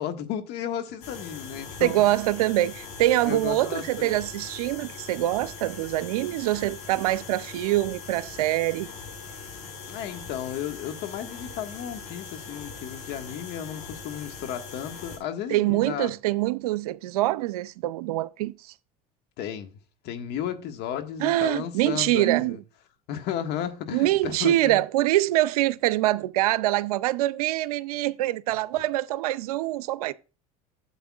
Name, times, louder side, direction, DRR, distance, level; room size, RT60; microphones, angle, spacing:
voice 1, 0.0-2.0 3.2-4.2 9.9-16.1 19.4-19.8 20.0-22.6 23.1-24.8, left 10 dB, 65° left, 1.6 m, -34 dB
sound 1, 1.0-15.2, left 5 dB, 85° left, 5.0 m, -41 dB
voice 2, 1.8-8.9 15.5-18.5 21.2-22.6 23.9-30.1, right 16 dB, 90° right, 0.5 m, -24 dB
12.5 x 7.7 x 2.4 m
supercardioid pair, 90°, 19 cm